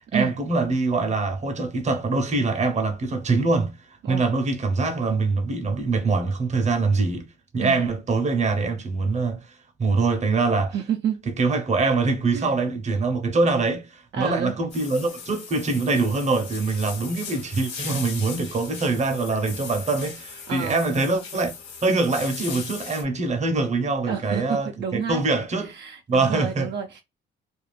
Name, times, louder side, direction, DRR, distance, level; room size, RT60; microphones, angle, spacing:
voice 1, 0.1-7.3 7.5-9.4 9.8-10.7 11.4-21.5 21.8-25.7 26.1-26.7, right 3 dB, 35° right, 0.8 m, -24 dB
voice 2, 7.6-7.9 10.7-11.2 12.3-12.5 14.1-14.6 20.5-20.9 24.1-25.2 25.6-27.0, right 8 dB, 60° right, 0.5 m, -29 dB
sound 1, 14.7-23.0, left 5 dB, 65° left, 1.2 m, -38 dB
2.5 x 2.3 x 3.3 m
cardioid pair, 90°, 20 cm